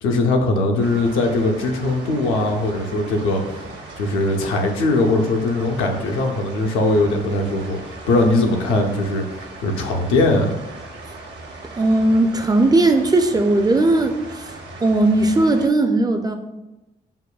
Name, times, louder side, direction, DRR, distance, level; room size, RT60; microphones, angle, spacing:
voice 1, 0.0-3.6 4.0-10.5, left 2 dB, 75° left, 3 dB, 0.5 m, -20 dB
sound 1, 0.8-15.7, right 2 dB, 55° right, 0.7 m, -38 dB
voice 2, 11.8-14.2 14.8-16.4, right 2 dB, 20° right, 6 dB, 0.4 m, -17 dB
5.4 x 2.1 x 2.3 m, 1.0 s
hypercardioid pair, 45°, 21 cm